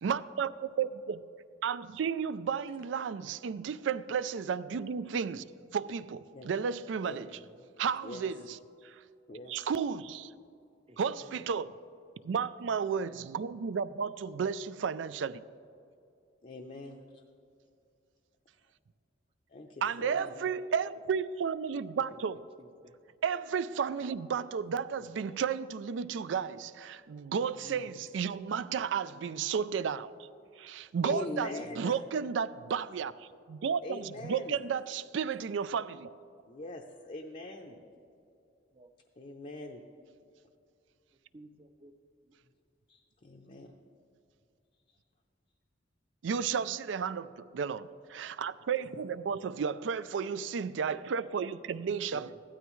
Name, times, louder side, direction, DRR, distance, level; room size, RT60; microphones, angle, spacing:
voice 1, 0.0-1.2 1.6-5.4 5.7-7.3 7.8-8.6 8.8-9.0 9.5-10.3 11.0-11.7 12.2-15.4 19.8-22.4 23.2-30.1 30.6-36.2 46.2-52.3, right 6 dB, 85° right, 0.4 m, -33 dB
voice 2, 7.2-7.7 10.9-11.4 19.9-20.7 22.1-22.2 22.6-23.0 25.0-25.4 37.1-37.2 38.7-38.9 41.3-41.9 42.2-42.5 48.8-49.0 52.1-52.4, right 2 dB, 30° right, 0.6 m, -55 dB
voice 3, 9.3-9.7 16.4-17.2 19.5-20.4 27.6-27.9 31.0-32.0 33.8-34.6 36.5-37.8 39.2-39.8 42.9-43.8 49.0-49.1, left 2 dB, 40° left, 0.6 m, -42 dB
15.5 x 12.5 x 3.1 m
head